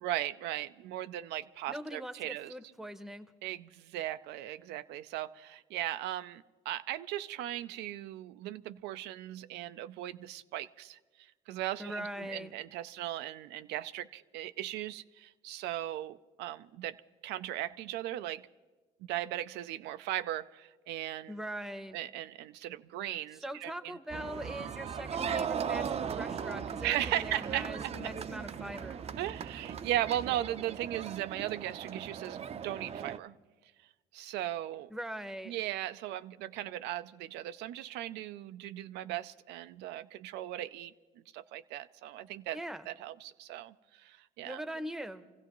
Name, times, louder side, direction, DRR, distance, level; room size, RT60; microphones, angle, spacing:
voice 1, 0.0-2.5 3.4-11.0 11.5-17.0 17.2-18.5 19.1-21.3 21.9-23.9 26.8-27.6 29.2-33.3 34.1-34.9 35.5-40.9 41.3-42.6 42.9-44.6, right 13 dB, 85° right, 12 dB, 0.4 m, -37 dB
voice 2, 1.7-3.3 11.8-12.5 21.3-22.0 23.4-29.0 34.9-35.5 42.5-42.9 44.4-45.2, right 1 dB, ahead, 11 dB, 0.8 m, -41 dB
sound 1, 24.1-33.2, right 7 dB, 40° right, 0.5 m, -38 dB
26.0 x 15.5 x 3.0 m, 1.3 s
cardioid pair, 110°, 17 cm